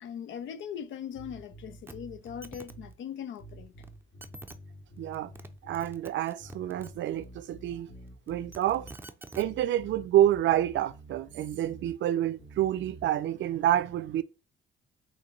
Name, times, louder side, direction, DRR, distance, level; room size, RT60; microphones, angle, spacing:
voice 1, 0.0-3.7, left 8 dB, 75° left, 0.6 m, -40 dB
sound 1, 1.1-2.9 3.4-6.0 6.4-9.0 9.4-11.9 12.4-13.0, right 1 dB, 50° left, 2.9 m, -49 dB
sound 2, 1.9-2.0 2.2-2.7 3.8-3.9 4.2-4.6 5.1-5.5 5.7-6.9 8.3-9.5 10.5-10.6, right 2 dB, 10° right, 0.5 m, -46 dB
voice 2, 5.0-5.3 5.6-7.9 8.3-8.9 9.3-14.2, right 12 dB, 70° right, 0.5 m, -28 dB
6.1 x 2.7 x 3.1 m
cardioid pair, 90°, 20 cm